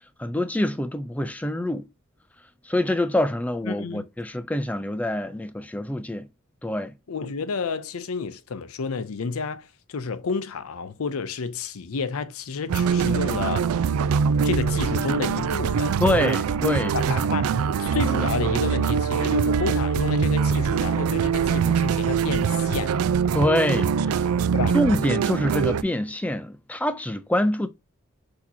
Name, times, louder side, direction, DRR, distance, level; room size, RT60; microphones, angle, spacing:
voice 1, 0.2-1.8 2.6-6.3 6.6-6.9 16.0-17.0 23.3-24.3 24.7-27.7, left 1 dB, 5° left, 0.3 m, -25 dB
voice 2, 3.6-4.0 7.1-13.7 14.4-16.3 16.9-22.9 24.5-24.8, left 5 dB, 80° left, 0.5 m, -30 dB
sound 1, 12.7-25.8, right 6 dB, 85° right, 0.3 m, -23 dB
6.1 x 2.8 x 2.7 m
head